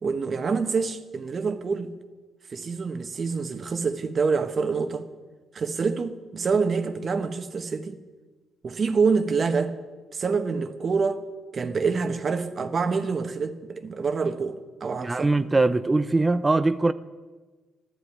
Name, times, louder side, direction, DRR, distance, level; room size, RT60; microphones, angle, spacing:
voice 1, 0.0-1.9 2.5-5.1 5.5-8.0 8.6-9.8 10.1-11.2 11.5-15.3, right 5 dB, 45° right, 1.3 m, -26 dB
voice 2, 15.0-16.9, right 2 dB, 20° right, 0.5 m, -22 dB
13.0 x 11.5 x 9.5 m
cardioid pair, 90°, 0 cm